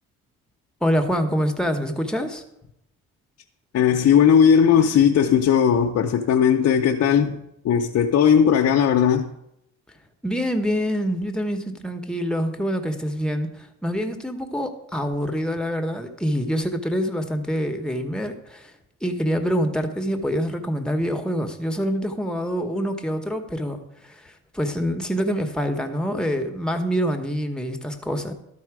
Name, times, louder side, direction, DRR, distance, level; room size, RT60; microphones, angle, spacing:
voice 1, 0.8-2.4 10.2-18.7 19.0-28.3, equal, 5° left, 1.0 m, -26 dB
voice 2, 3.7-7.4 7.6-9.3, left 8 dB, 60° left, 0.6 m, -17 dB
12.5 x 4.2 x 4.8 m
cardioid pair, 90°, 30 cm